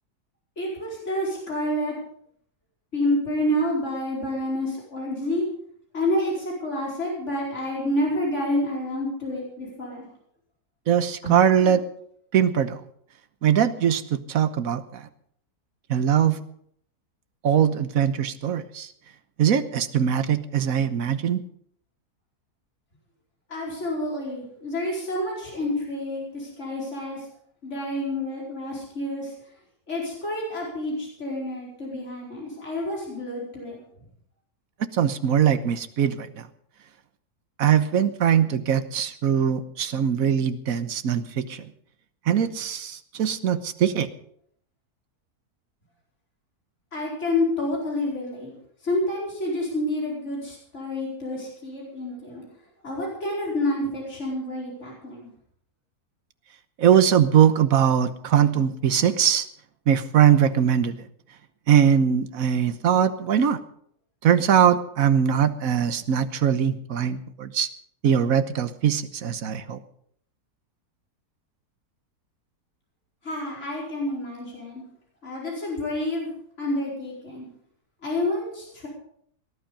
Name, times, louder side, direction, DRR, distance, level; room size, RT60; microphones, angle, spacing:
voice 1, 0.6-1.9 2.9-5.5 5.9-10.1 11.2-11.8 23.5-27.2 27.6-29.3 29.9-33.8 46.9-48.5 48.8-52.4 52.8-55.3 73.2-74.8 75.2-76.3 76.6-77.5 78.0-78.9, left 1 dB, 45° left, -3 dB, 5.1 m, -28 dB
voice 2, 10.9-11.8 12.3-12.8 13.4-15.0 15.9-16.4 17.4-18.9 19.4-21.4 34.9-36.4 37.6-41.6 42.3-44.1 56.8-59.5 59.9-61.0 61.7-63.6 64.2-67.7 68.0-69.8, right 8 dB, 65° right, 12 dB, 1.4 m, -21 dB
18.5 x 11.5 x 5.2 m, 0.66 s
omnidirectional pair, 1.7 m